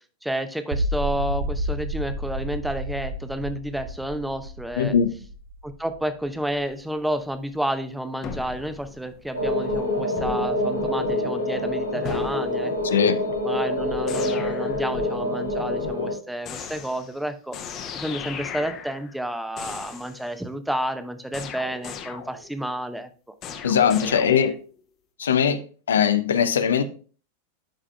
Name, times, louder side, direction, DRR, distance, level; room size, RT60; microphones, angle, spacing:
voice 1, 0.2-4.9 5.6-13.0 13.4-17.6 17.9-23.1 24.0-24.5, right 1 dB, 5° right, 0.7 m, -30 dB
sound 1, 0.7-6.8, right 1 dB, 45° right, 0.9 m, -31 dB
voice 2, 4.8-5.1 12.8-13.2 23.6-24.5 25.2-25.6 25.9-26.8, left 7 dB, 65° left, 0.5 m, -20 dB
sound 2, 8.2-9.5 10.2-10.6 12.0-12.5 14.1-14.9 16.5-17.2 17.5-19.3 19.6-20.3 21.3-22.6 23.4-24.7, left 7 dB, 35° left, 0.9 m, -37 dB
sound 3, 9.3-16.1, left 1 dB, 85° left, 1.7 m, -26 dB
11.5 x 4.9 x 2.3 m
figure-of-eight pair, 90°, 0 cm